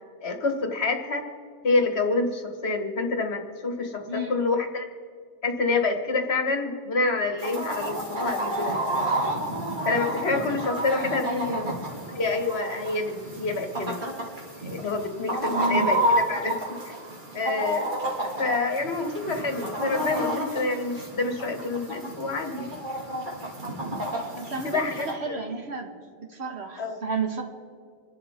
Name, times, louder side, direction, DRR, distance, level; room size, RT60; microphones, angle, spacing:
voice 1, 0.2-1.2 1.6-4.9 5.4-8.8 9.8-11.7 12.2-14.0 14.6-16.0 16.3-16.6 16.9-17.0 17.3-17.9 18.4-22.7 24.6-25.4 26.8-27.0, left 3 dB, 55° left, 5 dB, 1.8 m, -27 dB
voice 2, 4.1-4.4 11.2-11.7 15.5-16.0 24.3-25.9 26.2-27.4, right 3 dB, 55° right, 3 dB, 1.8 m, -31 dB
Chicken rooster, 7.4-25.1, right 1 dB, 40° right, 2.6 m, -30 dB
28.0 x 11.5 x 3.6 m, 2.3 s
omnidirectional pair, 1.3 m